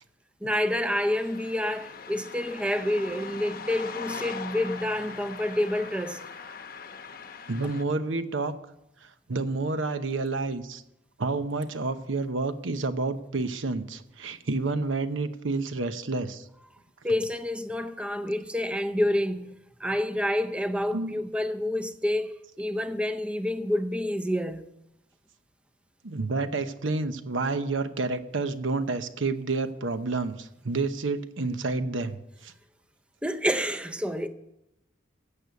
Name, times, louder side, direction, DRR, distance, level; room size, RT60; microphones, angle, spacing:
voice 1, 0.4-6.2 17.0-19.5 19.8-24.7 33.2-34.3, left 1 dB, 5° right, 0.5 m, -28 dB
sound 1, 0.7-7.8, left 5 dB, 50° left, 0.9 m, -41 dB
voice 2, 7.5-8.6 9.0-10.8 11.2-16.4 20.9-21.2 26.0-32.2 32.4-32.5, right 3 dB, 80° right, 0.9 m, -29 dB
15.5 x 6.9 x 8.2 m
head